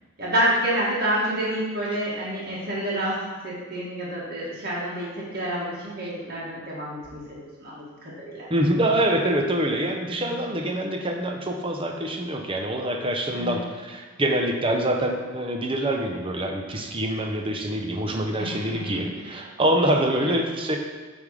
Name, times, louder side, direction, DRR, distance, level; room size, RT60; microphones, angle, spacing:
voice 1, 0.2-3.1 3.4-8.5 10.2-10.6 13.3-13.7 18.4-19.3 20.1-20.3, right 1 dB, 45° right, -7 dB, 1.8 m, -29 dB
voice 2, 8.5-20.8, right 1 dB, 25° right, 2 dB, 0.7 m, -25 dB
8.5 x 3.6 x 4.9 m, 1.4 s
head